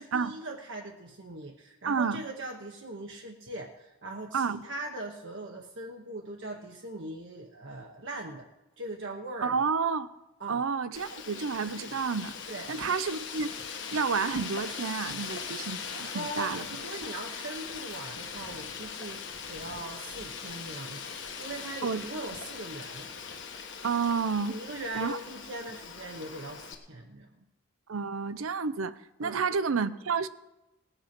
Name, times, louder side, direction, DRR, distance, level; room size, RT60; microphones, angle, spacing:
voice 1, 0.0-8.5 8.8-9.6 10.4-10.7 12.5-12.9 16.0-23.1 24.5-27.5 29.2-29.4, right 2 dB, 60° right, 0.9 m, -40 dB
voice 2, 1.9-2.2 4.3-4.6 9.4-10.1 10.5-12.3 12.7-13.6 13.9-16.7 21.8-22.1 23.8-24.6 24.9-25.2 27.9-30.3, right 5 dB, 75° right, 0.6 m, -30 dB
Wind, 10.9-26.7, left 6 dB, 55° left, 1.4 m, -40 dB
19.0 x 8.0 x 5.9 m
head